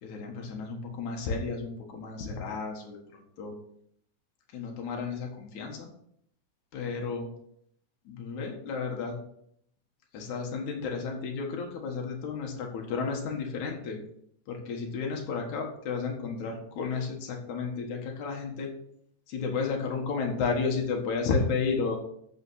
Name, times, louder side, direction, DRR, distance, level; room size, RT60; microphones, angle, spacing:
voice 1, 0.0-3.0 3.4-3.5 4.5-5.9 6.7-7.3 8.1-9.2 10.1-14.0 14.5-18.7 19.3-22.0, left 5 dB, 80° left, 1 dB, 3.0 m, -32 dB
8.3 x 7.0 x 6.4 m, 0.70 s
omnidirectional pair, 3.3 m